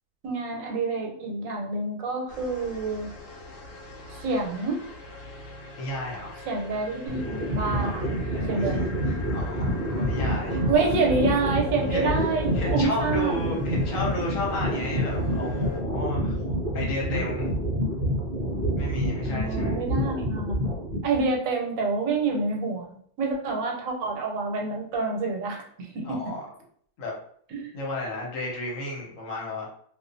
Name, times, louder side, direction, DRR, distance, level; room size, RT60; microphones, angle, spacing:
voice 1, 0.2-3.1 4.2-4.8 6.5-8.0 8.5-8.8 10.5-13.5 19.2-20.6 21.0-26.3 27.5-27.7, right 3 dB, 90° right, 1 dB, 1.0 m, -27 dB
sound 1, 2.3-15.8, left 2 dB, 65° left, 0.7 m, -41 dB
voice 2, 5.8-6.4 7.8-8.8 9.3-10.6 11.9-12.1 12.5-16.3 16.7-17.5 18.8-19.8 26.0-26.4 27.0-27.1 27.7-29.7, left 1 dB, 80° left, -3 dB, 1.2 m, -33 dB
sound 2, 7.1-21.3, equal, 60° right, 0.5 m, -28 dB
2.4 x 2.3 x 2.5 m, 0.62 s
omnidirectional pair, 1.4 m